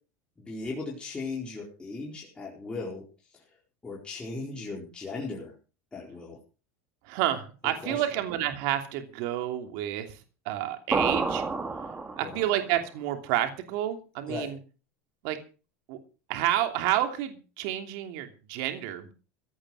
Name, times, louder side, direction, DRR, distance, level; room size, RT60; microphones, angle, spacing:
voice 1, 0.4-3.0 3.3-3.4 3.8-5.5 5.9-6.4 7.8-8.0 12.2-12.5 14.3-14.5, left 3 dB, 15° left, -4 dB, 4.6 m, -37 dB
voice 2, 7.0-11.4 12.2-14.6 15.2-15.4 15.9-16.0 16.3-19.1, right 12 dB, 65° right, 6 dB, 3.0 m, -30 dB
sound 1, 10.9-12.6, right 3 dB, 15° right, 2.0 m, -29 dB
16.5 x 10.5 x 6.4 m, 0.36 s
supercardioid pair, 135°, 7 cm